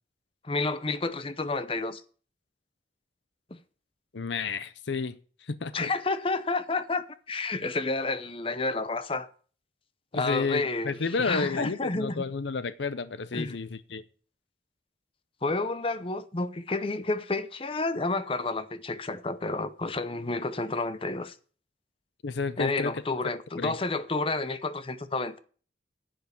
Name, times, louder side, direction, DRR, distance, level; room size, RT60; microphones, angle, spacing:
voice 1, 0.4-2.0 5.7-9.3 10.1-10.9 11.2-12.2 13.3-13.6 15.4-21.3 22.6-25.4, left 3 dB, 30° left, 0.7 m, -30 dB
voice 2, 4.1-5.9 10.1-14.0 22.2-23.0 23.6-23.8, left 4 dB, 70° left, 0.7 m, -31 dB
10.5 x 7.8 x 7.0 m
head